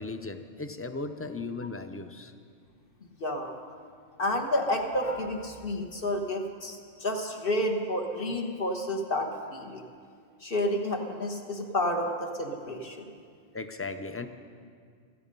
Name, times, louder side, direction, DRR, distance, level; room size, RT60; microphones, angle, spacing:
voice 1, 0.0-2.3 13.5-14.3, left 3 dB, 20° left, 9 dB, 0.4 m, -37 dB
voice 2, 3.2-3.6 4.2-9.8 10.4-13.1, left 1 dB, 55° left, 3 dB, 1.4 m, -30 dB
16.0 x 13.5 x 5.4 m, 2.2 s
omnidirectional pair, 1.1 m